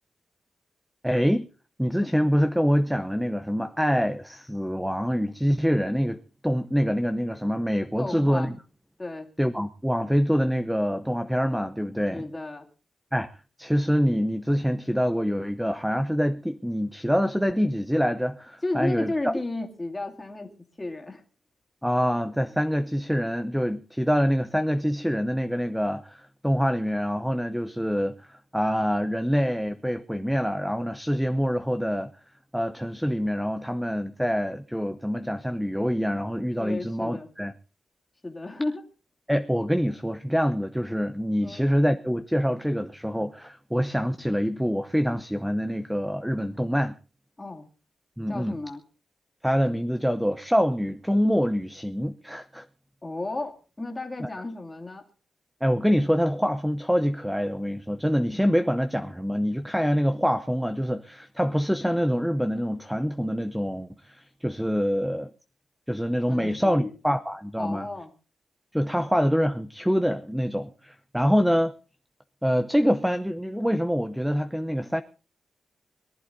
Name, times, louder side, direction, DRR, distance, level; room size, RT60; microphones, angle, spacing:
voice 1, 1.0-1.5 1.8-8.6 9.4-12.2 13.1-13.3 13.6-19.4 21.8-32.1 32.5-37.5 39.3-46.9 48.2-48.5 49.4-52.7 54.2-54.3 55.6-65.3 65.9-67.9 68.7-71.7 72.4-75.0, equal, ahead, 0.7 m, -25 dB
voice 2, 8.0-8.5 9.0-9.3 12.1-12.7 18.6-20.5 20.8-21.2 36.6-37.3 38.2-38.8 41.4-41.6 47.4-47.7 48.3-48.8 53.0-55.0 66.3-66.9 67.6-68.1, left 2 dB, 15° left, 2.6 m, -33 dB
22.0 x 11.5 x 4.0 m
wide cardioid pair, 170°, 0 cm